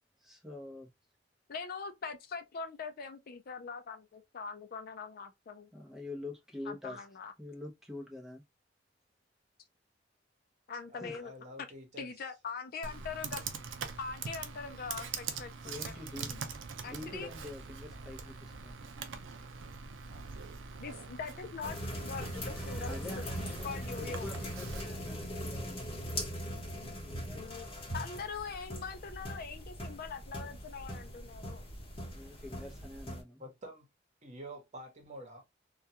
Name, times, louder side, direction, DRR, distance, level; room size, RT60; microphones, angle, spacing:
voice 1, 0.2-0.9 5.7-7.0 7.4-8.4 11.0-11.2 15.6-16.4 16.8-18.8 22.5-23.7 24.0-25.8 27.0-27.4 32.1-33.4, left 2 dB, ahead, 0.7 m, -46 dB
voice 2, 1.5-5.7 6.7-7.3 10.7-11.3 12.0-13.4 14.0-16.0 16.3-16.4 16.8-17.3 20.8-23.2 23.6-24.3 27.3-27.7 27.9-31.6, left 5 dB, 50° left, 0.4 m, -42 dB
voice 3, 10.9-12.3 33.4-33.9 34.2-35.4, equal, 40° right, 1.0 m, -48 dB
Computer keyboard, 12.8-24.8, right 5 dB, 85° right, 0.5 m, -43 dB
sound 1, 21.6-33.2, equal, 30° left, 1.0 m, -40 dB
2.3 x 2.2 x 2.7 m
head